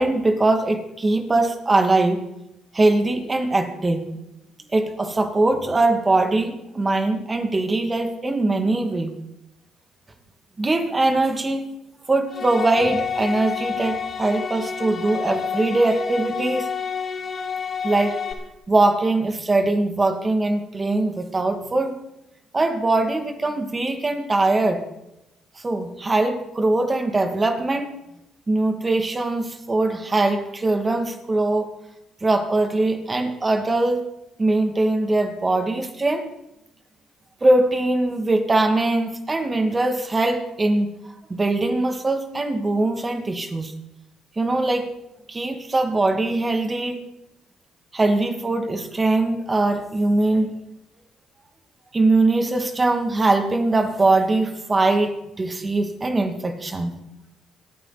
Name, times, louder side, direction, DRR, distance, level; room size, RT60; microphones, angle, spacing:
voice 1, 0.0-2.2 2.7-4.1 4.7-9.1 10.6-11.6 12.1-16.7 17.8-18.2 18.7-21.9 22.5-24.8 25.6-27.9 28.5-31.7 32.2-34.0 34.4-36.3 37.4-40.9 41.3-43.7 44.4-44.9 45.3-47.0 47.9-50.5 51.9-56.9, right 2 dB, 25° right, 6 dB, 2.5 m, -21 dB
sound 1, 12.3-18.3, left 6 dB, 45° left, 3.3 m, -29 dB
27.5 x 9.3 x 4.2 m, 0.89 s
supercardioid pair, 65°, 0 cm